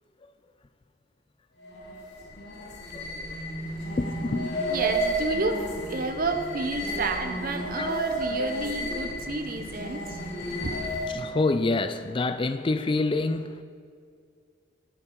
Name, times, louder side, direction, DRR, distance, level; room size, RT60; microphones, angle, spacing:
sound 1, 1.6-11.3, equal, 65° left, 3.2 m, -32 dB
voice 1, 4.0-4.6 7.8-7.9 10.4-10.7 11.1-13.6, left 3 dB, 25° left, 11 dB, 0.3 m, -27 dB
voice 2, 4.7-10.8, right 3 dB, 45° right, 7 dB, 0.8 m, -30 dB
19.0 x 7.5 x 4.7 m, 2.3 s
head